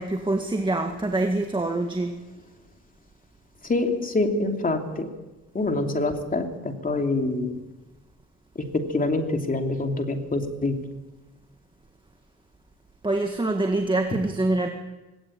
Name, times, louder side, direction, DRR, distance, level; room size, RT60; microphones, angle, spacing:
voice 1, 0.0-2.2 13.0-14.7, right 2 dB, 15° right, 4 dB, 1.8 m, -25 dB
voice 2, 3.7-5.1 5.5-7.6 8.6-10.9, left 2 dB, 30° left, 4 dB, 2.8 m, -26 dB
18.5 x 18.0 x 8.8 m, 1.1 s
cardioid pair, 90°, 30 cm